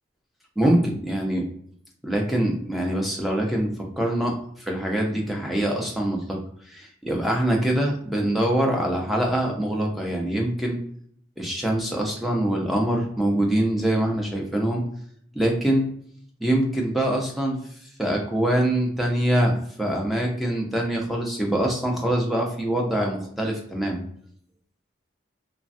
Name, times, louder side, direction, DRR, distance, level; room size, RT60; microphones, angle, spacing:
voice 1, 0.6-1.4 2.0-6.4 6.7-10.8 11.4-14.8 15.3-15.8 16.4-19.5 19.8-24.0, right 1 dB, ahead, 0 dB, 0.5 m, -24 dB
3.1 x 2.2 x 2.6 m, 0.64 s
head